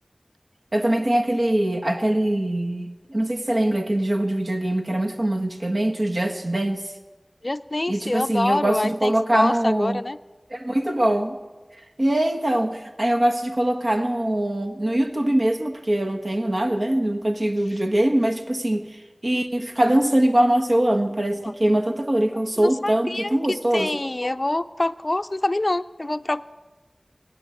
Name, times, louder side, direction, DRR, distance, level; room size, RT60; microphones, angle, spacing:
voice 1, 0.7-6.9 7.9-10.0 10.5-11.4 12.0-23.9, right 1 dB, 65° right, 4 dB, 1.3 m, -22 dB
voice 2, 7.4-10.2 21.4-21.5 22.6-26.5, left 2 dB, 50° left, 10 dB, 0.4 m, -26 dB
19.0 x 8.7 x 7.7 m, 1.2 s
wide cardioid pair, 45°, 0 cm